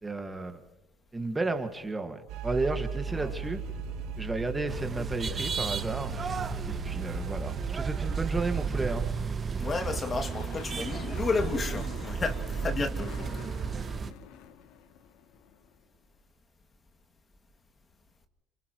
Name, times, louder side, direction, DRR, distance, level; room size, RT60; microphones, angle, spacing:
voice 1, 0.0-0.6 1.1-3.6 4.2-6.3 6.7-9.1, right 3 dB, 20° right, 1.8 m, -33 dB
sound 1, 2.3-9.1, right 5 dB, 75° right, 2.9 m, -37 dB
voice 2, 3.1-3.4 9.6-13.6, left 4 dB, 35° left, 2.2 m, -32 dB
sound 2, 4.7-14.1, right 6 dB, 35° right, 1.0 m, -34 dB
sound 3, 9.4-15.8, left 10 dB, 70° left, 1.1 m, -48 dB
29.5 x 28.0 x 3.1 m
supercardioid pair, 75°, 0 cm